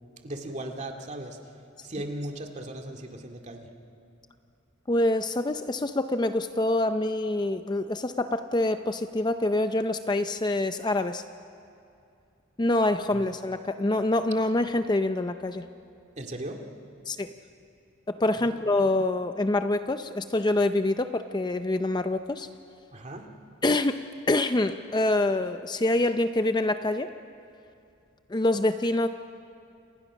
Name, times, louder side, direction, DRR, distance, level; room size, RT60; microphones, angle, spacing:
voice 1, 0.2-1.4 1.8-3.7 13.1-13.3 16.2-16.6 18.4-18.6 22.9-23.3, right 1 dB, 35° right, 3 dB, 2.3 m, -37 dB
voice 2, 4.9-11.2 12.6-15.7 17.1-17.3 18.1-22.5 23.6-24.0 24.3-27.1 28.3-29.1, left 2 dB, 20° left, 9 dB, 0.5 m, -26 dB
29.5 x 27.5 x 6.2 m, 2.6 s
head